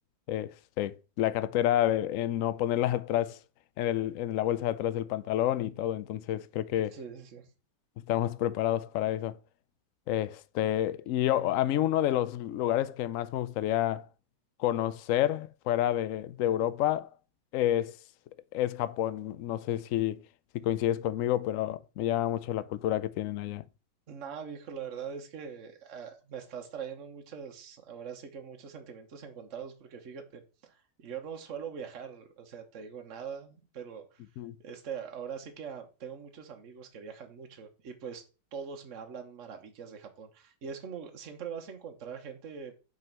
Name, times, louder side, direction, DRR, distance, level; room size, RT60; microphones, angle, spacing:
voice 1, 0.3-3.4 3.8-7.0 8.1-9.3 10.1-14.1 14.6-17.1 17.5-18.0 18.5-20.2 20.5-23.6 34.4-34.6, left 12 dB, 75° left, 0.7 m, -29 dB
voice 2, 6.9-7.5 24.1-34.2 34.6-38.2 38.5-42.7, right 7 dB, 50° right, 1.4 m, -42 dB
5.6 x 5.4 x 5.9 m
omnidirectional pair, 1.9 m